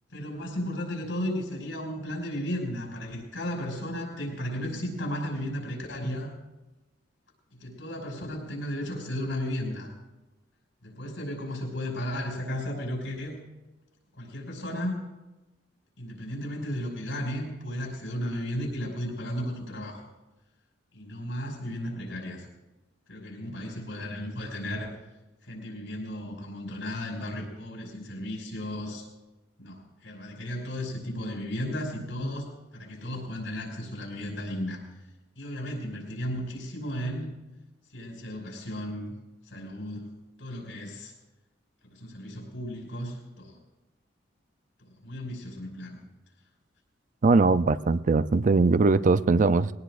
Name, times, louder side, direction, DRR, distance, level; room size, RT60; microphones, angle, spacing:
voice 1, 0.1-6.3 7.6-9.9 10.8-13.4 14.2-15.0 16.0-20.0 20.9-22.5 23.1-24.9 25.5-29.1 29.6-34.8 35.4-37.3 37.9-39.1 39.5-40.1 40.4-41.1 41.9-43.6 45.0-46.0, equal, 80° left, 0 dB, 5.5 m, -34 dB
voice 2, 47.2-49.7, right 3 dB, 45° right, 14 dB, 0.4 m, -21 dB
21.5 x 18.0 x 2.5 m, 1.1 s
head